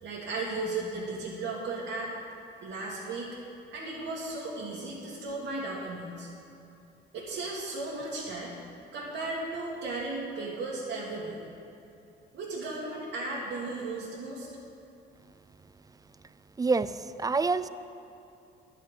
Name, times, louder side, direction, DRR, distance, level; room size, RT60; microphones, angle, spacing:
voice 1, 0.0-2.1 2.6-3.3 3.7-6.3 7.1-8.5 8.9-11.4 12.3-14.5, right 2 dB, 75° right, -7 dB, 2.0 m, -35 dB
voice 2, 16.6-17.7, right 4 dB, 20° right, 14 dB, 0.3 m, -27 dB
11.0 x 5.8 x 8.2 m, 2.8 s
cardioid pair, 90°, 20 cm